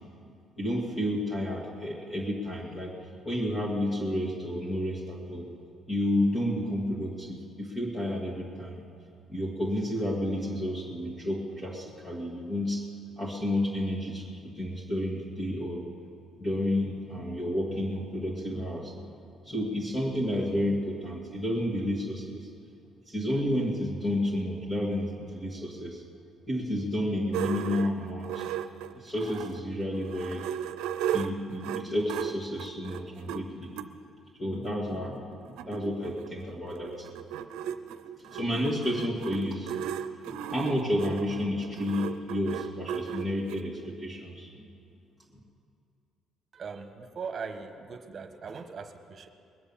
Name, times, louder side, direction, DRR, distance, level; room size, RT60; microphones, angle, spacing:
voice 1, 0.2-3.0 3.2-5.5 5.9-8.8 9.3-12.8 13.2-15.9 16.4-19.1 19.4-22.5 23.1-26.0 26.5-28.4 28.9-30.4 31.1-33.8 34.4-37.1 38.0-39.8 40.2-44.6, left 1 dB, 20° left, -4 dB, 2.4 m, -31 dB
sound 1, 27.3-29.6 30.0-33.9 34.7-34.8 35.1-35.2 35.3-43.6, right 10 dB, 90° right, 0.6 m, -35 dB
voice 2, 46.5-49.3, right 5 dB, 45° right, 7 dB, 1.3 m, -40 dB
21.0 x 8.0 x 7.3 m, 2.4 s
cardioid pair, 100°, 0 cm